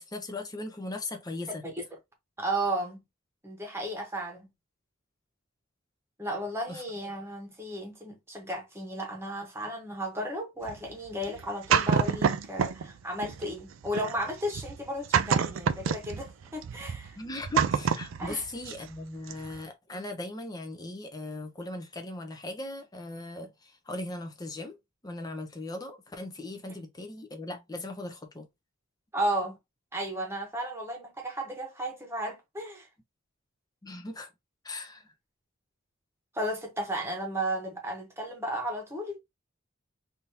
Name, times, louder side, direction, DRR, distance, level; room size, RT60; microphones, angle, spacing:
voice 1, 0.0-1.6 6.7-6.8 17.2-24.8 25.0-28.5 33.8-34.3 34.6-35.0, left 2 dB, 20° left, 0.7 m, -38 dB
voice 2, 1.5-1.8 2.4-3.0 3.4-4.5 6.2-17.2 18.2-18.4 29.1-29.6 29.9-32.9 36.3-39.2, right 1 dB, 15° right, 1.1 m, -34 dB
sound 1, 10.6-12.9 13.2-19.0 19.3-19.6, right 7 dB, 75° right, 0.4 m, -28 dB
3.5 x 2.7 x 2.8 m
head